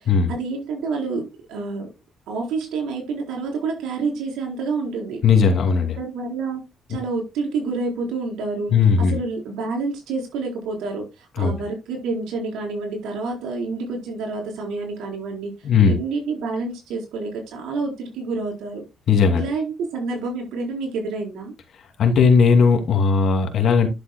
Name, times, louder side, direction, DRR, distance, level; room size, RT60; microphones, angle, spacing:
voice 1, 0.0-1.9 2.3-5.2 6.0-6.6 6.9-15.5 15.8-18.8 19.3-21.5, right 4 dB, 90° right, 1 dB, 4.2 m, -28 dB
voice 2, 5.2-6.0 8.7-9.1 11.4-11.5 15.6-16.0 19.1-19.5 22.0-23.9, left 5 dB, 65° left, 5 dB, 2.5 m, -17 dB
11.0 x 8.0 x 2.2 m, 0.24 s
cardioid pair, 90°, 0 cm